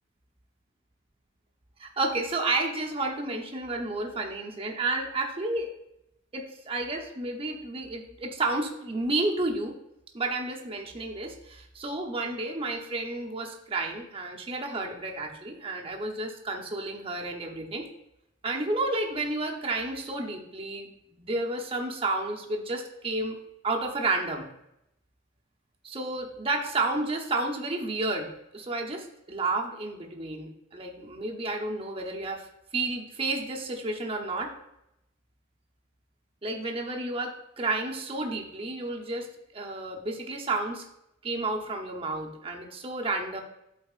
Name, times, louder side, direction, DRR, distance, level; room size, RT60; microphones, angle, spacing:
voice 1, 1.8-5.7 6.3-9.8 10.1-17.9 18.4-23.4 23.6-24.5 25.8-32.5 32.7-34.5 36.4-40.8 41.2-43.4, right 2 dB, 30° right, 1 dB, 0.8 m, -31 dB
12.5 x 4.1 x 2.4 m, 0.83 s
head